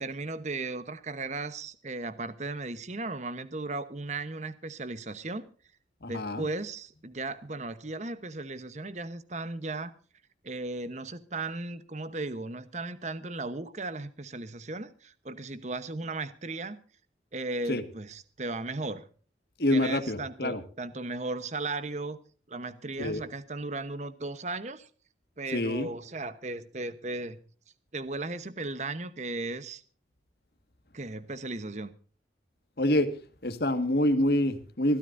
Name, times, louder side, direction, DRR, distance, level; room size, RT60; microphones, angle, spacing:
voice 1, 0.0-5.5 6.1-9.9 10.4-16.8 17.3-19.1 19.7-22.2 22.5-24.9 25.4-27.4 27.9-29.8 30.9-31.9, right 2 dB, 40° right, 1.0 m, -36 dB
voice 2, 6.0-6.5 17.7-17.8 19.6-20.6 23.0-23.2 25.5-25.9 32.8-33.1 33.4-35.0, left 1 dB, 60° left, 1.8 m, -26 dB
25.0 x 13.0 x 2.6 m
head